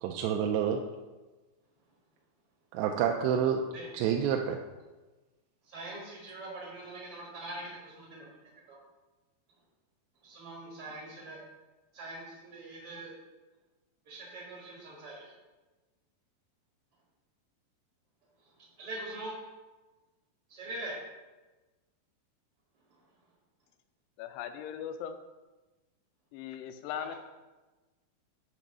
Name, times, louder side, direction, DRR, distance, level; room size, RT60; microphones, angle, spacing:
voice 1, 0.0-0.8 2.7-3.6 3.9-4.6, right 8 dB, 85° right, 2 dB, 2.6 m, -28 dB
voice 2, 5.7-8.3 8.7-8.8 10.2-11.4 11.9-13.1 14.1-15.3 18.8-19.4 20.5-21.0 27.0-27.1, right 2 dB, 65° right, -4 dB, 1.3 m, -43 dB
voice 3, 24.2-25.2 26.3-27.2, left 9 dB, 80° left, 8 dB, 2.5 m, -39 dB
7.8 x 3.0 x 6.0 m, 1.2 s
omnidirectional pair, 5.0 m